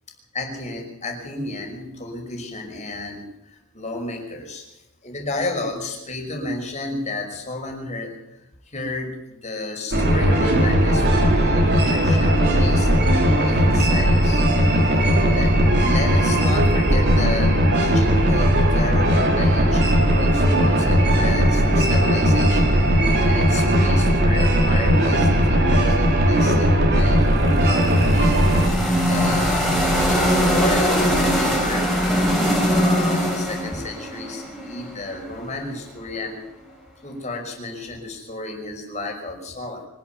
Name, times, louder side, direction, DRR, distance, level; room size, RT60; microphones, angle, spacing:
voice 1, 0.3-12.9 13.4-14.5 14.8-15.0 15.2-28.3 29.1-29.7 30.1-30.2 30.4-31.9 32.4-36.4 36.7-36.8 37.0-39.9, left 2 dB, 30° left, 2 dB, 5.8 m, -32 dB
sound 1, 9.9-28.7, equal, 50° right, 4.2 m, -18 dB
sound 2, 27.2-35.2, equal, ahead, 5.5 m, -21 dB
25.0 x 12.0 x 9.4 m, 0.91 s
head